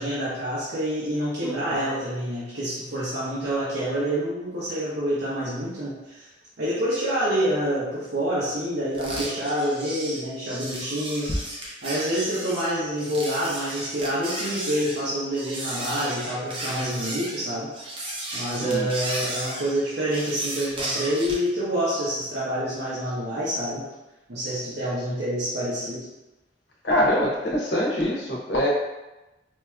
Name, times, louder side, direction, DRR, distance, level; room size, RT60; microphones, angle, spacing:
voice 1, 0.0-6.3 6.6-11.4 11.8-17.7 18.3-23.8 24.3-26.1, right 1 dB, 60° right, -10 dB, 0.8 m, -27 dB
sound 1, 8.9-21.5, right 1 dB, 30° right, 0.6 m, -34 dB
voice 2, 18.5-18.9 26.8-28.7, left 1 dB, 60° left, -3 dB, 0.9 m, -24 dB
4.6 x 2.6 x 2.3 m, 1.0 s
head